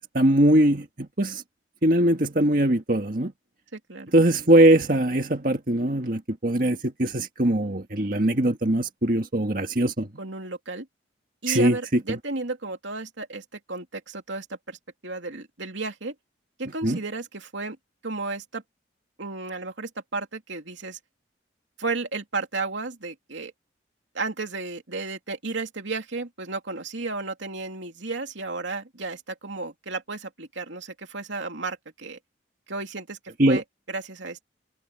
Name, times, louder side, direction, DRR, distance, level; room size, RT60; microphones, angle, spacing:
voice 1, 0.1-1.4 1.8-3.3 4.1-10.1 11.5-12.2 16.8-17.0 33.4-33.6, right 1 dB, 50° right, 1.8 m, -21 dB
voice 2, 3.7-4.1 10.2-10.9 11.4-14.8 15.0-16.1 16.6-17.8 18.0-18.6 19.2-21.0 21.8-23.5 24.1-32.2 32.7-33.2 33.5-34.4, right 3 dB, 85° right, 2.9 m, -33 dB
head